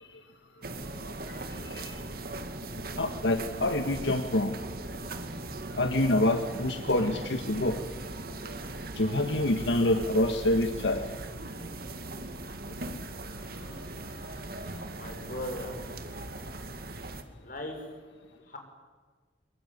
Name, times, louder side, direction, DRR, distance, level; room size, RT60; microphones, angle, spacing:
sound 1, 0.6-17.2, right 2 dB, 55° right, 2.2 m, -39 dB
voice 1, 3.0-4.5 5.7-7.8 9.0-11.0, left 1 dB, 90° left, 6 dB, 1.6 m, -26 dB
voice 2, 15.0-15.7 17.4-17.8 18.5-18.6, left 1 dB, 50° left, 3 dB, 6.1 m, -38 dB
23.5 x 23.0 x 9.6 m, 1.5 s
head